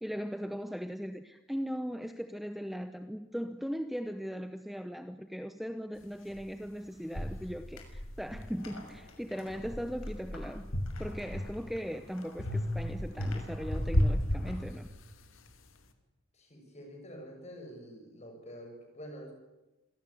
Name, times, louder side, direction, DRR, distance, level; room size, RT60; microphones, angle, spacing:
voice 1, 0.0-10.7 11.0-14.9, equal, ahead, 9 dB, 0.8 m, -38 dB
sound 1, 6.3-6.4 7.1-9.0 9.5-11.8 12.4-15.2, equal, 70° left, 2.6 m, -34 dB
sound 2, 7.7-7.9 8.4-14.7, left 3 dB, 90° left, 6.5 m, -53 dB
voice 2, 16.3-19.3, equal, 30° left, 4 dB, 6.8 m, -47 dB
26.0 x 18.5 x 8.4 m, 1.1 s
head